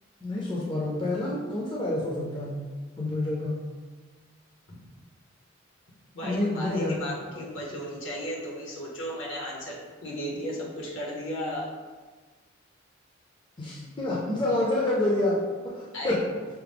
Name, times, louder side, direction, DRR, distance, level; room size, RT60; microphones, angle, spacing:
voice 1, 0.2-2.6 3.0-3.6 6.2-7.0 7.2-7.3 13.6-15.4 15.7-16.2, left 2 dB, 20° left, -5 dB, 0.5 m, -28 dB
voice 2, 6.1-11.7 15.9-16.2, equal, 70° left, -3 dB, 1.0 m, -35 dB
5.7 x 2.1 x 3.4 m, 1.4 s
head